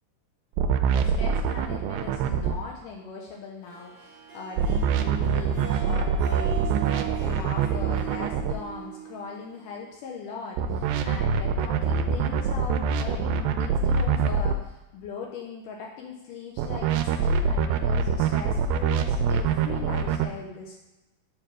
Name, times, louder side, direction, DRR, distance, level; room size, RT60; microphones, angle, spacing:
sound 1, 0.6-2.6 4.6-8.5 10.6-14.5 16.6-20.3, right 6 dB, 85° right, 2.3 m, -24 dB
voice 1, 0.9-20.8, left 4 dB, 75° left, 0 dB, 2.0 m, -39 dB
Harp, 3.6-9.9, right 10 dB, 65° right, 1.7 m, -39 dB
7.3 x 3.4 x 6.0 m, 1.0 s
omnidirectional pair, 4.4 m